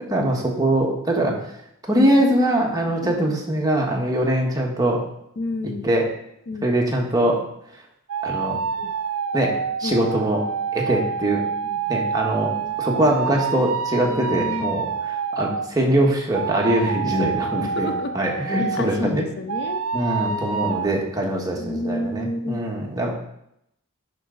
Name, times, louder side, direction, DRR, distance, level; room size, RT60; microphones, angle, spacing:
voice 1, 0.1-1.3 1.9-5.0 5.8-6.1 6.6-7.4 8.2-8.6 9.3-9.5 9.8-10.4 10.7-11.5 11.9-12.5 12.8-17.9 18.1-19.2 19.9-23.1, right 1 dB, 15° right, -1 dB, 1.4 m, -22 dB
voice 2, 5.4-5.9 6.5-6.7 8.5-8.9 9.8-10.0 11.6-11.8 12.5-12.7 14.0-14.7 17.6-18.1 18.8-19.8 20.2-20.7 21.6-22.6, left 2 dB, 50° left, 7 dB, 0.6 m, -31 dB
sound 1, 8.1-15.7 16.3-19.0 19.5-20.9, right 6 dB, 70° right, 0.5 m, -27 dB
10.5 x 4.6 x 3.9 m, 0.78 s
head